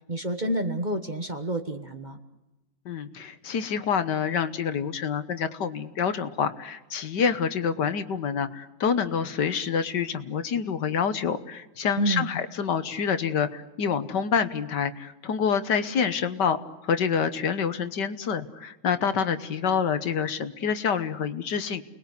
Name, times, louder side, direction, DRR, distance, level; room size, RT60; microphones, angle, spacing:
voice 1, 0.1-2.2 12.0-12.3, right 1 dB, 25° right, 7 dB, 1.4 m, -28 dB
voice 2, 2.9-16.6 16.8-21.8, left 6 dB, 65° left, 11 dB, 1.8 m, -27 dB
30.0 x 20.5 x 8.3 m, 1.0 s
omnidirectional pair, 2.0 m